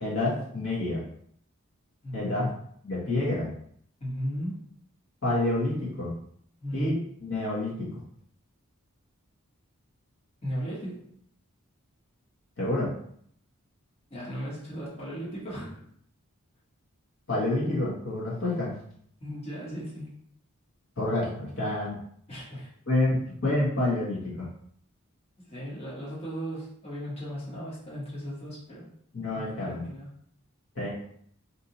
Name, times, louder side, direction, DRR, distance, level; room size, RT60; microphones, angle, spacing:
voice 1, 0.0-1.0 2.1-2.5 2.8-3.5 5.2-6.1 6.7-7.9 12.6-12.9 17.3-18.7 21.0-22.0 22.9-24.5 29.1-29.8 30.7-30.9, left 2 dB, 60° left, -6 dB, 1.2 m, -28 dB
voice 2, 2.0-2.6 4.0-4.6 6.6-6.9 10.4-11.1 14.1-15.8 19.2-20.1 22.3-22.7 25.4-28.9 29.3-30.1, equal, 30° left, -7 dB, 1.3 m, -36 dB
2.8 x 2.6 x 3.9 m, 0.64 s
head